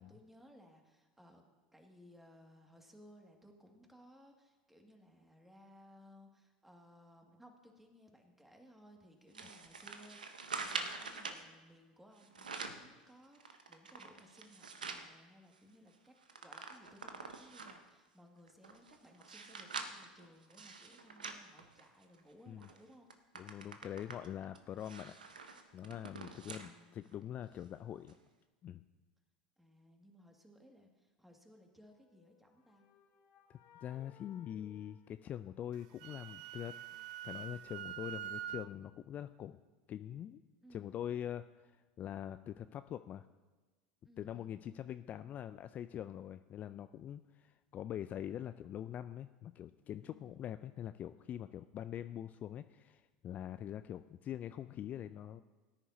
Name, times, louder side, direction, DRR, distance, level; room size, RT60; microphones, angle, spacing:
voice 1, 0.0-1.4 1.7-16.1 16.4-23.1 26.4-27.3 29.6-32.9 40.6-41.0 44.0-44.8 50.0-50.4, equal, 5° right, 2 dB, 2.0 m, -61 dB
sound 1, 9.3-11.4 12.2-12.9 13.3-15.1 15.5-15.6 15.9-17.9 18.5-22.2 22.6-22.8 23.1-26.7 27.1-27.2 28.1-28.2, right 4 dB, 90° right, 0.8 m, -45 dB
voice 2, 23.4-25.2 25.7-28.1 28.6-28.8 33.5-36.8 37.2-39.6 39.9-40.4 40.7-43.3 44.2-55.4, left 10 dB, 40° left, 11 dB, 0.3 m, -44 dB
sound 2, 32.1-36.0, left 6 dB, 55° left, 1.2 m, -65 dB
Wind instrument woodwind instrument, 35.7-38.7, right 11 dB, 70° right, 0.4 m, -45 dB
18.0 x 9.9 x 2.7 m, 1.3 s
hypercardioid pair, 80°, 4 cm